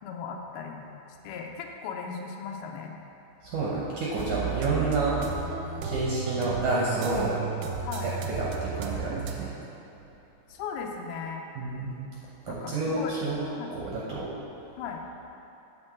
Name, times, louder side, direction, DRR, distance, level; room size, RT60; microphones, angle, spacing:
voice 1, 0.0-0.8 1.2-3.0 7.8-8.1 10.5-11.5 12.5-13.1 13.6-13.7 14.8-15.0, left 6 dB, 90° left, 2 dB, 2.6 m, -37 dB
voice 2, 3.4-5.2 5.8-7.4 8.0-8.1 8.4-9.5 11.6-11.9 12.5-13.5 13.7-14.3, right 3 dB, 70° right, -6 dB, 2.1 m, -29 dB
sound 1, 4.2-9.4, right 6 dB, 85° right, 2.5 m, -33 dB
8.6 x 4.4 x 7.4 m, 2.9 s
omnidirectional pair, 4.4 m